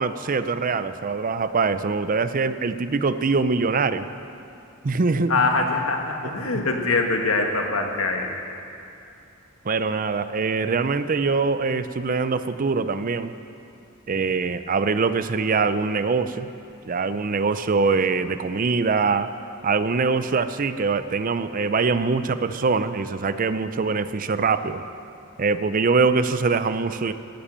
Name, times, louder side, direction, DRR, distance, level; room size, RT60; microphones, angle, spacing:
voice 1, 0.0-4.1 4.8-5.5 6.2-6.3 9.6-13.3 14.1-16.5 16.9-19.3 19.6-24.8 25.4-27.1, right 4 dB, 40° right, 12 dB, 0.5 m, -23 dB
voice 2, 5.3-8.3, left 3 dB, 80° left, 3 dB, 1.6 m, -23 dB
12.0 x 10.5 x 8.6 m, 2.7 s
head